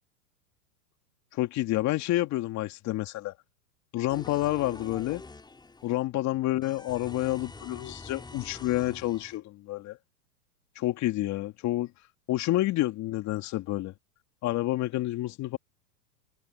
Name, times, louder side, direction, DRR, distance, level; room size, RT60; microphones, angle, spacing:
voice 1, 1.3-3.3 3.9-5.2 5.8-10.0 10.8-11.9 12.3-13.9 14.4-15.6, left 16 dB, 35° left, 2.7 m, -29 dB
sound 1, 4.1-6.1 6.6-9.4, left 3 dB, 10° left, 7.0 m, -46 dB
hypercardioid pair, 125°, 47 cm